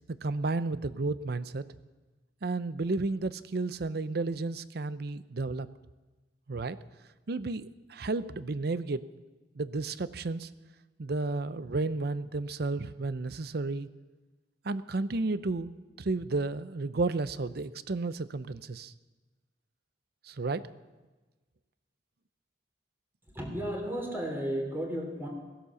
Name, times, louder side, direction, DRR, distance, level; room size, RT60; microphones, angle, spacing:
voice 1, 0.2-1.6 2.4-5.7 6.5-6.8 7.3-9.1 9.6-10.5 11.0-13.9 14.6-15.7 16.0-18.9 20.2-20.7, right 3 dB, 65° right, 14 dB, 0.6 m, -32 dB
voice 2, 23.3-25.3, equal, 15° right, 1 dB, 3.1 m, -34 dB
17.0 x 11.5 x 7.0 m, 1.2 s
head